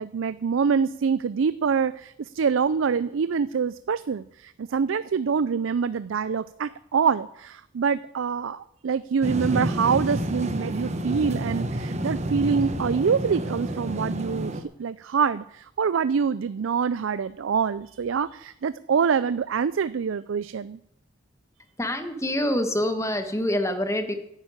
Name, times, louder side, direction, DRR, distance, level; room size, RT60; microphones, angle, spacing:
voice 1, 0.0-20.8, right 6 dB, 85° right, 16 dB, 0.4 m, -25 dB
sound 1, 9.2-14.6, right 1 dB, 35° right, 1.1 m, -29 dB
voice 2, 21.8-24.1, left 1 dB, 15° left, 7 dB, 1.4 m, -26 dB
11.0 x 9.8 x 8.8 m, 0.78 s
head